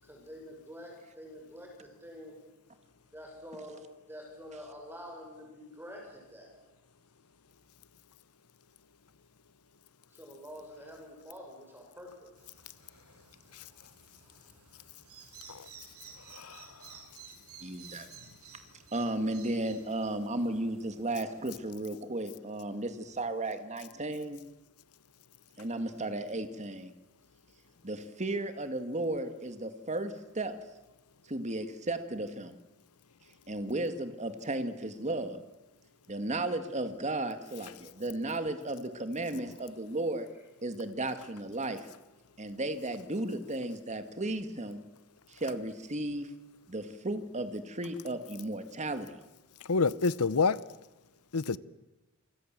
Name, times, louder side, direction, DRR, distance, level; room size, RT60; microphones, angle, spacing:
voice 1, 0.0-2.4 3.1-6.5 10.1-12.3, equal, 10° right, 6.3 m, -47 dB
sound 1, 12.4-21.7, right 6 dB, 85° right, 6.5 m, -54 dB
voice 2, 17.6-18.1 18.9-24.4 25.6-26.9 27.8-30.6 31.3-32.6 33.5-35.4 36.1-40.3 40.6-41.9 42.4-44.8 45.3-46.3 46.7-49.2, right 2 dB, 30° right, 2.0 m, -34 dB
voice 3, 49.7-50.6 51.3-51.6, left 4 dB, 85° left, 0.9 m, -26 dB
28.0 x 24.5 x 7.6 m
head